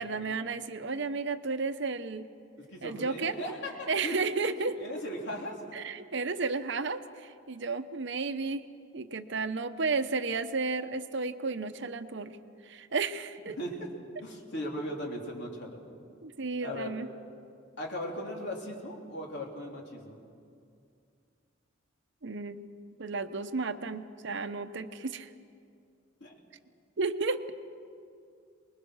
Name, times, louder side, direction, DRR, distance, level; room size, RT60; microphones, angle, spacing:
voice 1, 0.0-2.3 2.8-3.4 3.9-4.8 5.7-8.7 8.9-12.4 12.6-13.6 16.2-17.1 22.2-22.7 23.0-25.3 27.0-27.4, right 4 dB, 65° right, 10 dB, 0.8 m, -33 dB
voice 2, 2.6-4.2 4.8-5.8 13.5-13.9 14.2-15.9 16.6-16.9 17.8-20.2 26.2-26.4, equal, 60° left, 0 dB, 3.2 m, -38 dB
24.0 x 21.0 x 6.4 m, 2.4 s
head